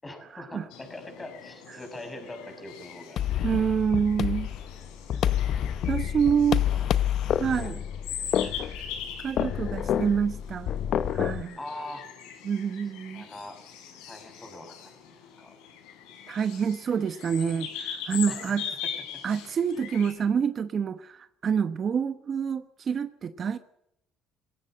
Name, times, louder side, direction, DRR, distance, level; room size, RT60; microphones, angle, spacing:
voice 1, 0.0-3.7 6.6-6.9 7.5-7.7 11.6-12.1 13.1-13.6 14.1-14.9 15.4-15.5 18.3-18.6, left 1 dB, 15° left, 6 dB, 6.5 m, -42 dB
sound 1, 0.7-20.1, left 8 dB, 80° left, 6.2 m, -41 dB
sound 2, 3.2-11.4, left 10 dB, 55° left, 0.9 m, -28 dB
voice 2, 3.4-4.5 5.9-6.6 7.3-7.8 9.2-10.7 11.1-11.6 12.4-13.3 16.3-18.6 19.2-23.6, right 7 dB, 40° right, 11 dB, 1.1 m, -27 dB
20.0 x 17.0 x 7.8 m, 0.79 s
cardioid pair, 105°, 0 cm